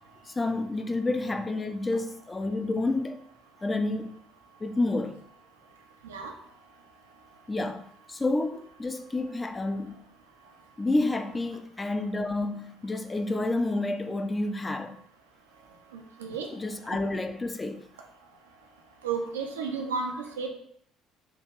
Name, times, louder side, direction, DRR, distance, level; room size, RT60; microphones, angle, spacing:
voice 1, 0.3-3.3 3.6-4.1 4.6-5.2 7.5-10.0 10.8-15.0 16.5-17.8, left 2 dB, 20° left, 0.3 m, -29 dB
voice 2, 19.0-20.5, right 5 dB, 80° right, 0.4 m, -32 dB
3.6 x 2.3 x 3.0 m
figure-of-eight pair, 55°, 0 cm